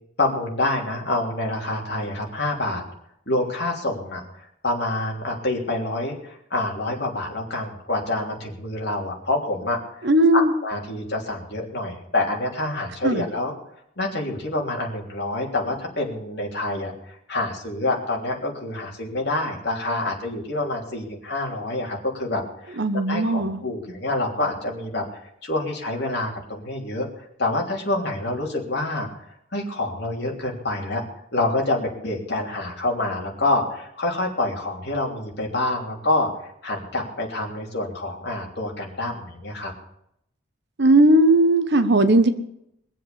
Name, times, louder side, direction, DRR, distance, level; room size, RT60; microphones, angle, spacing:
voice 1, 0.2-2.8 3.3-4.2 4.6-13.5 14.0-16.9 17.3-25.0 25.4-27.1 27.4-29.1 29.5-31.0 31.3-36.3 36.6-39.7, left 2 dB, 50° left, 0 dB, 3.2 m, -27 dB
voice 2, 10.0-10.5 13.0-13.2 22.8-23.6 40.8-42.3, right 1 dB, 55° right, 10 dB, 1.1 m, -17 dB
22.5 x 7.6 x 7.0 m, 0.76 s
head